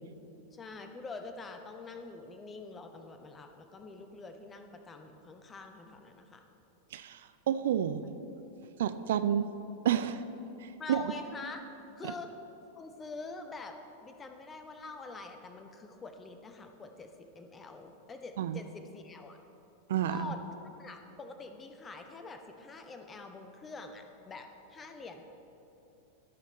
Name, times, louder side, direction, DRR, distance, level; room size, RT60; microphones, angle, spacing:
voice 1, 0.5-6.4 8.0-8.1 10.8-11.6 12.0-12.3 12.7-19.4 20.0-20.4 20.8-25.2, left 3 dB, 20° left, 6 dB, 0.7 m, -45 dB
voice 2, 7.5-8.0 8.8-9.5 9.8-10.2 10.6-11.0 12.0-12.1 18.4-18.6 19.9-20.3, right 10 dB, 60° right, 11 dB, 0.3 m, -30 dB
13.5 x 5.2 x 3.9 m, 2.9 s
figure-of-eight pair, 90°, 0 cm